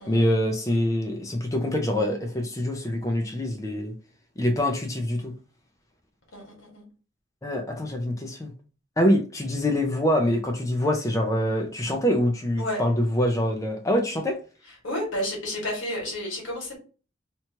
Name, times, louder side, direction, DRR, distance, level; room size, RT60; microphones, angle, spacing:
voice 1, 0.0-3.9 4.4-5.3 7.4-8.5 9.0-14.4, left 1 dB, 15° left, 0.4 m, -25 dB
voice 2, 6.3-6.8 12.6-12.8 14.8-16.8, left 1 dB, 85° left, 1.5 m, -31 dB
2.9 x 2.3 x 2.8 m
head